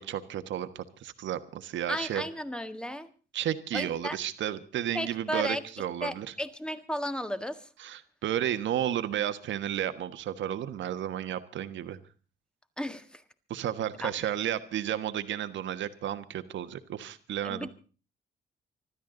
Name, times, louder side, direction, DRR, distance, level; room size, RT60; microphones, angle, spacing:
voice 1, 0.0-2.2 3.3-6.3 7.8-12.0 13.5-17.7, right 11 dB, 75° right, 10 dB, 1.4 m, -32 dB
voice 2, 1.9-3.1 3.7-4.2 4.9-5.6 6.0-7.7 12.8-13.2 14.0-14.1 17.4-17.7, equal, 5° left, 10 dB, 1.7 m, -34 dB
25.5 x 13.0 x 3.9 m, 0.37 s
cardioid pair, 110°, 19 cm